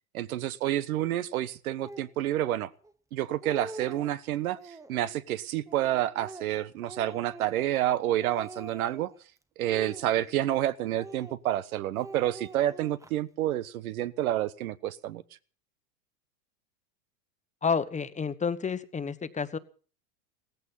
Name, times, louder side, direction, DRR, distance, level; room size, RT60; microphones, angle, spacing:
voice 1, 0.1-2.7 3.1-9.1 9.6-15.2, right 13 dB, 80° right, 1.3 m, -29 dB
Speech, 1.8-2.1 2.8-2.9 3.2-4.1 4.5-5.1 5.7-7.9 8.2-9.2 9.6-10.6 10.9-11.6 11.9-13.1, right 2 dB, 5° right, 1.0 m, -45 dB
voice 2, 17.6-19.6, left 5 dB, 15° left, 1.2 m, -30 dB
16.5 x 15.0 x 5.6 m
hypercardioid pair, 110°, 42 cm